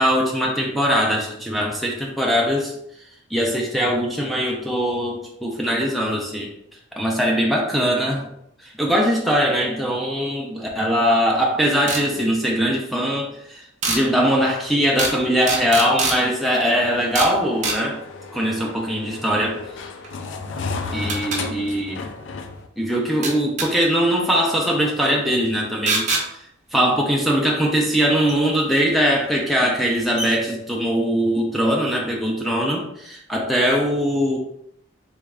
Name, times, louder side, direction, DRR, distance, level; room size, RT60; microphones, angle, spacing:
voice 1, 0.0-2.7 3.3-6.5 7.0-8.3 8.6-18.0 18.3-19.6 20.9-22.1 22.8-26.2 26.7-34.4, equal, ahead, -1 dB, 0.4 m, -21 dB
sound 1, 11.9-12.0 13.8-14.0 15.0-15.2 15.5-16.2 17.2-17.4 17.6-17.8 20.0-20.1 21.1-21.4 23.2-23.7 25.9-26.3 28.3-28.4 29.4-29.5 29.8-29.9 30.2-30.3, right 3 dB, 40° right, 0.6 m, -23 dB
sound 2, 16.8-22.7, left 4 dB, 65° left, 0.3 m, -33 dB
3.4 x 3.3 x 2.4 m, 0.77 s
head